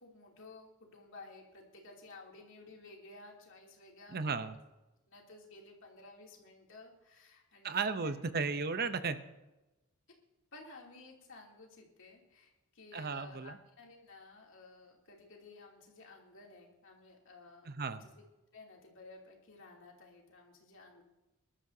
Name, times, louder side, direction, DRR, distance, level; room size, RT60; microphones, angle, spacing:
voice 1, 0.0-4.5 5.1-8.2 10.5-18.3 18.5-21.0, left 3 dB, 60° left, -1 dB, 3.0 m, -55 dB
voice 2, 4.1-4.5 7.6-9.2 12.9-13.6 17.7-18.1, right 4 dB, 45° right, 11 dB, 0.7 m, -35 dB
23.5 x 12.5 x 2.8 m, 1.0 s
head